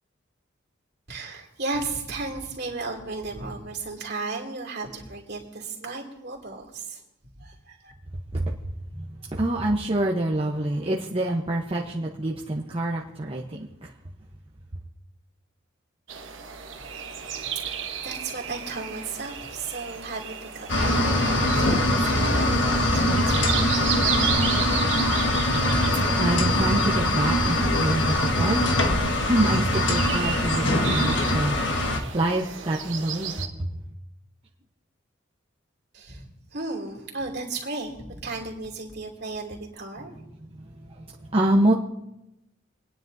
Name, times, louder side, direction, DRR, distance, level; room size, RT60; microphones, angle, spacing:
voice 1, 1.1-7.0 7.4-7.9 18.0-23.9 25.1-25.3 26.2-26.4 35.9-40.1, right 3 dB, 55° right, 0 dB, 2.7 m, -35 dB
voice 2, 9.3-13.7 25.9-28.9 29.3-33.7 40.9-41.7, right 1 dB, 30° right, -3 dB, 0.9 m, -26 dB
sound 1, 16.1-33.5, right 8 dB, 75° right, 1.1 m, -34 dB
sound 2, 20.7-32.0, left 1 dB, 65° left, 1.4 m, -22 dB
29.5 x 10.0 x 2.7 m, 0.92 s
head